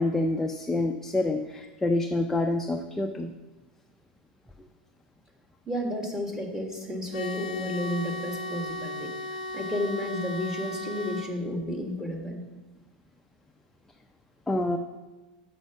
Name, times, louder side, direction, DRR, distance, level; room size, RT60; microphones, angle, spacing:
voice 1, 0.0-3.3 14.5-14.8, left 2 dB, 10° left, 4 dB, 0.5 m, -27 dB
voice 2, 5.7-12.4, left 1 dB, 10° right, 1 dB, 1.7 m, -32 dB
sound 1, 7.1-11.3, left 2 dB, 90° left, 0.6 m, -35 dB
6.2 x 5.9 x 6.9 m, 1.2 s
hypercardioid pair, 110°, 5 cm